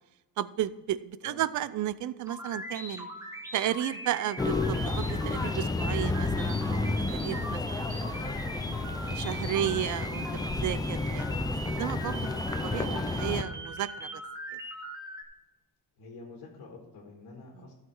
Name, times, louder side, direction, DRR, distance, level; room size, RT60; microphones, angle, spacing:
voice 1, 0.4-3.1 3.5-8.4 9.0-10.3 10.6-11.4 11.7-12.3 12.6-14.1 17.6-17.7, right 12 dB, 55° right, 17 dB, 0.5 m, -33 dB
sound 1, 2.3-15.2, right 1 dB, 10° right, 1.0 m, -41 dB
sound 2, 4.4-13.4, left 3 dB, 10° left, 0.4 m, -31 dB
voice 2, 16.0-17.7, left 3 dB, 75° left, 0 dB, 1.7 m, -47 dB
14.5 x 5.8 x 4.7 m, 1.1 s
cardioid pair, 175°, 36 cm